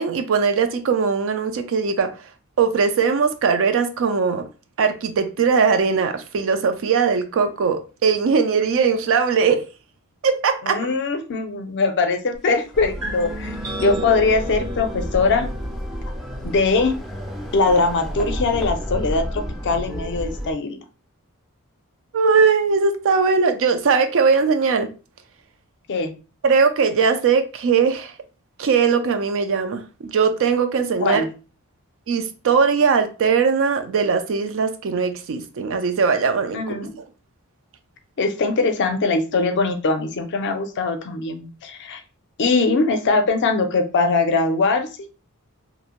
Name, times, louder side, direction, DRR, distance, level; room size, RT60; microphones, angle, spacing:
voice 1, 0.0-2.1 2.6-4.5 4.8-9.6 10.2-10.8 22.1-24.9 26.4-28.1 28.6-31.2 32.1-36.6, right 5 dB, 65° right, 0.4 m, -20 dB
voice 2, 10.6-15.5 16.4-16.9 17.5-20.8 25.9-26.1 31.0-31.3 36.5-37.0 38.2-42.0 42.4-44.9, left 3 dB, 55° left, 0.5 m, -21 dB
sound 1, 12.7-20.5, equal, ahead, 0.4 m, -31 dB
sound 2, 13.0-18.7, equal, 85° right, 1.1 m, -35 dB
2.6 x 2.1 x 2.9 m
head